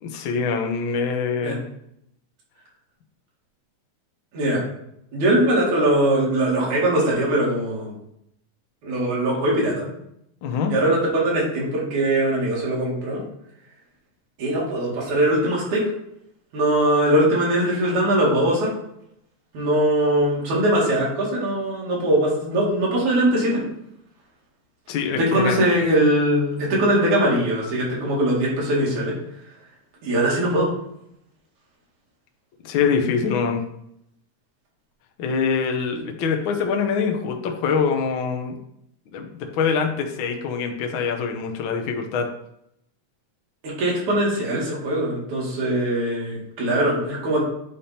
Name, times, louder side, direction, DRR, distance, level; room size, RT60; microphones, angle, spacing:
voice 1, 0.0-1.6 10.4-10.7 24.9-25.7 32.6-33.6 35.2-38.5 39.1-42.3, left 5 dB, 70° left, 4 dB, 1.1 m, -24 dB
voice 2, 5.1-7.9 8.8-9.9 10.7-13.2 14.4-15.8 16.5-18.7 19.5-23.6 25.2-29.1 30.0-30.7 43.6-47.4, right 1 dB, 75° right, -4 dB, 3.6 m, -21 dB
10.0 x 3.5 x 4.3 m, 0.76 s
omnidirectional pair, 3.4 m